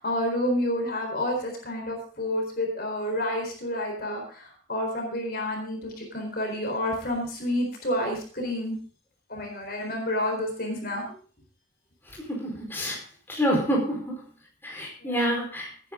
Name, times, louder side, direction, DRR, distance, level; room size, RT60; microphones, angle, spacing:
voice 1, 0.0-8.8 9.3-11.1 15.0-15.3, left 1 dB, 50° left, 2 dB, 4.1 m, -29 dB
voice 2, 12.1-13.0 13.3-14.1 14.6-15.7, equal, 10° left, -1 dB, 4.5 m, -27 dB
18.0 x 10.0 x 3.8 m, 0.42 s
head